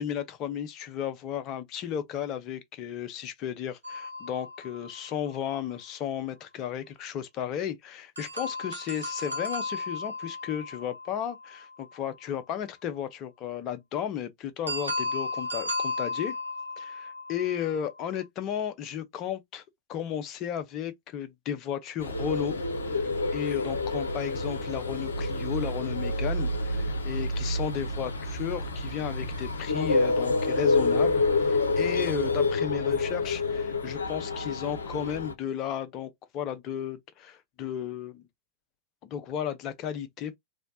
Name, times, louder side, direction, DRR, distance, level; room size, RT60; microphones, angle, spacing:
voice 1, 0.0-16.3 16.8-19.6 19.9-22.6 22.9-38.2 39.0-40.4, left 9 dB, 35° left, 0.6 m, -34 dB
sound 1, 3.8-5.6 8.2-12.1 14.7-18.1, left 2 dB, 80° right, 0.7 m, -35 dB
sound 2, 22.0-35.3, left 2 dB, 75° left, 0.6 m, -28 dB
3.2 x 2.7 x 2.6 m
figure-of-eight pair, 90°, 0 cm